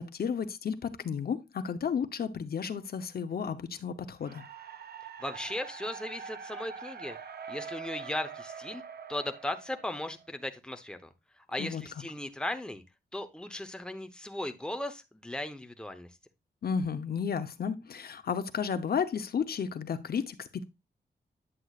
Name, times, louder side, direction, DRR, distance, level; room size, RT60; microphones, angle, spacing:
voice 1, 0.0-4.4 11.6-11.8 16.6-20.6, left 6 dB, 65° left, 0.9 m, -33 dB
sound 1, 4.2-10.4, right 6 dB, 70° right, 0.8 m, -44 dB
voice 2, 5.2-7.2 7.5-8.8 9.1-11.0 11.5-12.8 13.1-16.1, left 1 dB, 5° left, 0.9 m, -37 dB
10.0 x 7.7 x 2.5 m
wide cardioid pair, 100°, 17 cm